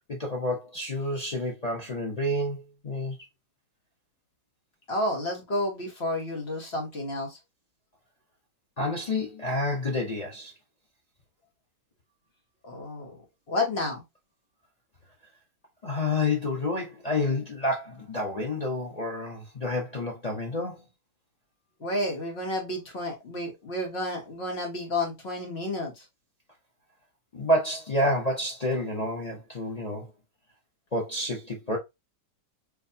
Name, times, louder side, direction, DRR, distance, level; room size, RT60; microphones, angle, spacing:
voice 1, 0.1-3.2 8.8-10.5 15.8-20.8 27.3-30.1 30.9-31.8, left 1 dB, 70° left, 0.3 m, -29 dB
voice 2, 4.9-7.4 12.6-13.2 13.5-14.0 21.8-26.0, left 1 dB, 40° left, 1.3 m, -31 dB
4.5 x 2.6 x 2.6 m
omnidirectional pair, 1.9 m